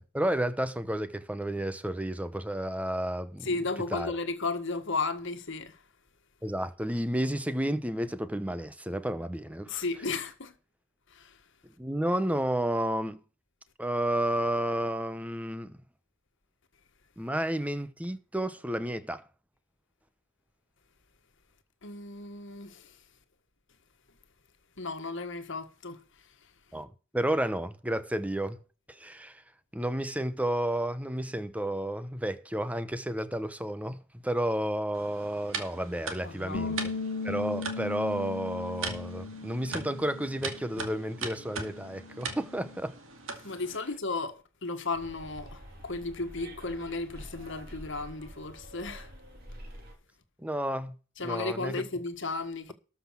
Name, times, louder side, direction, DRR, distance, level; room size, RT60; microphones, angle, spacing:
voice 1, 0.0-3.5 3.9-4.1 6.4-9.8 11.8-13.2 13.8-15.8 17.2-19.2 26.7-26.9 27.1-28.6 29.0-29.4 29.7-34.0 34.2-36.8 37.2-42.9 50.4-50.9 51.2-51.8, right 1 dB, 5° right, 0.9 m, -31 dB
voice 2, 3.4-5.8 9.7-10.5 11.1-11.4 21.8-23.0 24.8-26.0 36.2-36.8 43.4-49.1 51.2-52.7, left 3 dB, 60° left, 1.7 m, -34 dB
sound 1, 34.9-43.8, right 4 dB, 70° right, 2.3 m, -40 dB
Bass guitar, 36.5-42.8, left 4 dB, 90° left, 0.8 m, -38 dB
Bus, 44.9-49.9, equal, 50° right, 3.3 m, -47 dB
13.5 x 6.0 x 5.9 m
head